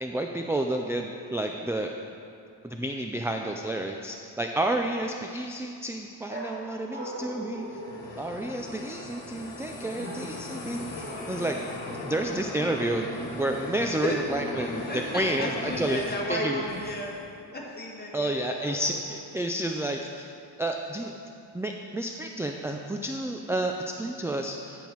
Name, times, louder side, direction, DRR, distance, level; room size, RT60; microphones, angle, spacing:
voice 1, 0.0-1.9 2.6-7.7 8.2-11.6 12.0-13.1 13.4-14.8 15.1-16.0 16.3-16.6 18.1-20.2 20.6-21.1 21.5-24.9, right 1 dB, 5° right, 3 dB, 0.3 m, -30 dB
sound 1, 6.3-8.8 10.0-10.6 11.0-11.4 14.4-15.1 18.6-19.3, right 1 dB, 25° right, 1.6 m, -40 dB
sound 2, 7.5-17.2, left 2 dB, 75° left, 1.4 m, -38 dB
voice 2, 14.6-17.2 17.5-18.5, left 1 dB, 20° left, -3 dB, 1.7 m, -33 dB
10.0 x 7.2 x 4.5 m, 2.5 s
wide cardioid pair, 105°, 44 cm